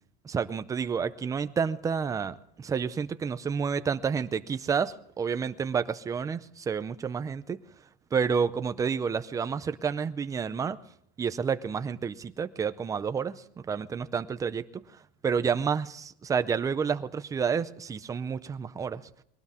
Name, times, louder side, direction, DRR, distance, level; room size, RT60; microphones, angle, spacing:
voice 1, 0.2-7.6 8.1-10.8 11.2-14.8 15.2-19.0, right 6 dB, 10° right, 11 dB, 0.5 m, -30 dB
22.0 x 18.5 x 3.6 m, 0.73 s
cardioid pair, 170°, 30 cm